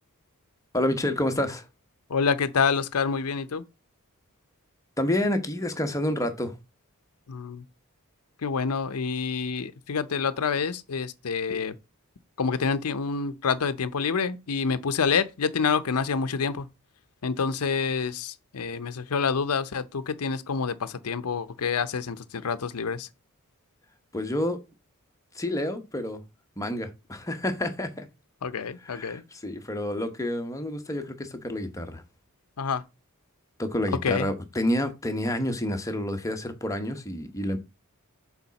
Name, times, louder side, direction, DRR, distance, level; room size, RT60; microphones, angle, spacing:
voice 1, 0.7-1.7 5.0-6.5 24.1-24.6 25.3-26.2 26.6-28.1 28.8-32.0 33.6-37.6, left 1 dB, 15° left, 1.0 m, -29 dB
voice 2, 2.1-3.6 7.3-7.6 8.4-11.7 12.4-16.7 17.2-23.1 28.4-29.2 32.6-32.8 34.0-34.3, left 5 dB, 75° left, 0.6 m, -27 dB
7.1 x 4.2 x 4.0 m
head